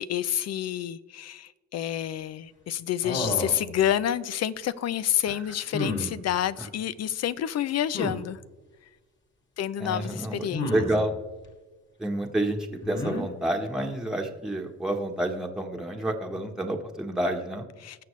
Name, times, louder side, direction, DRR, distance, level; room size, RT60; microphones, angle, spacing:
voice 1, 0.0-8.4 9.6-10.7 17.8-18.0, left 10 dB, 60° left, 0.6 m, -29 dB
sound 1, 3.0-3.7 5.7-6.1 7.9-8.2 10.5-11.0 12.8-13.2, left 2 dB, 40° left, 2.5 m, -30 dB
voice 2, 9.8-11.1 12.0-17.6, right 1 dB, ahead, 1.2 m, -29 dB
20.0 x 6.8 x 3.2 m
cardioid pair, 90°, 30 cm